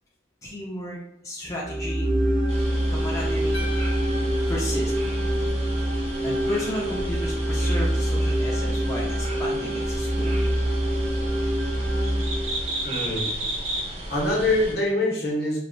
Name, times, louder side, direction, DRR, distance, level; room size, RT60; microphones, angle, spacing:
voice 1, 0.4-1.0 1.2-2.1 2.9-3.7 4.5-4.9 6.2-10.3, equal, 20° left, -4 dB, 0.3 m, -33 dB
sound 1, 1.6-12.9, right 1 dB, 75° right, 0.8 m, -25 dB
sound 2, 2.5-14.7, right 1 dB, 35° right, 0.5 m, -34 dB
sound 3, 3.5-5.8, left 2 dB, 90° left, 0.8 m, -41 dB
voice 2, 12.8-13.2 14.1-15.6, left 2 dB, 60° left, -2 dB, 0.8 m, -24 dB
3.0 x 2.1 x 2.5 m, 0.75 s
head